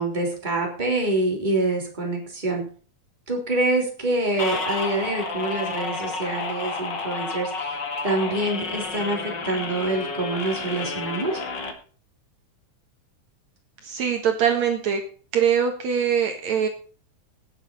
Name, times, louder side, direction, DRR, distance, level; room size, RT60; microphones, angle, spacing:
voice 1, 0.0-2.7 3.3-11.4, right 2 dB, 15° right, 0 dB, 3.6 m, -26 dB
sound 1, 4.4-11.7, left 3 dB, 40° left, 2.3 m, -31 dB
voice 2, 13.8-15.0 15.3-16.7, right 8 dB, 65° right, 4 dB, 2.7 m, -22 dB
18.0 x 7.7 x 4.2 m, 0.40 s
omnidirectional pair, 3.6 m